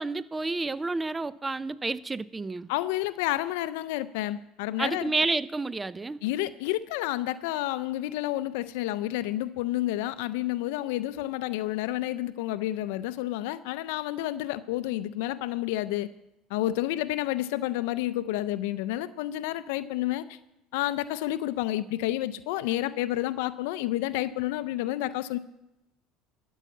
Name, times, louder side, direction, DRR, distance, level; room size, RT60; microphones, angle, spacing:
voice 1, 0.0-2.7 4.8-6.2, right 3 dB, 15° right, 0.4 m, -30 dB
voice 2, 2.7-5.1 6.2-16.1 16.5-20.4 20.7-25.4, left 15 dB, 80° left, 0.4 m, -30 dB
13.0 x 5.5 x 8.3 m
supercardioid pair, 90°, 0 cm